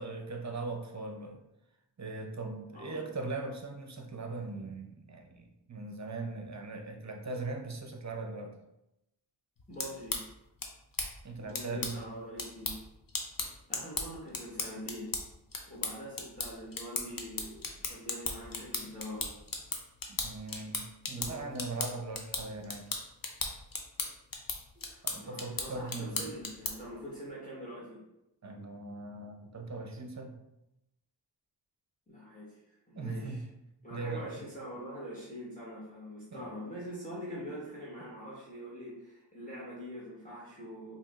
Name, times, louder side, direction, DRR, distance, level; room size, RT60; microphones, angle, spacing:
voice 1, 0.0-1.4 2.0-8.5 11.2-12.0 20.1-22.9 25.0-26.2 28.4-30.4 33.0-33.4 33.9-34.4 36.3-36.5, right 3 dB, 35° right, 3 dB, 0.6 m, -40 dB
voice 2, 2.7-3.1 9.7-10.2 11.4-12.8 13.7-15.2 15.7-19.3 21.2-21.5 24.7-28.0 32.1-33.4 33.8-41.0, equal, 20° left, -8 dB, 1.2 m, -44 dB
sound 1, 9.6-27.0, left 3 dB, 45° left, 0.7 m, -38 dB
4.7 x 2.8 x 2.4 m, 0.88 s
wide cardioid pair, 45°, 46 cm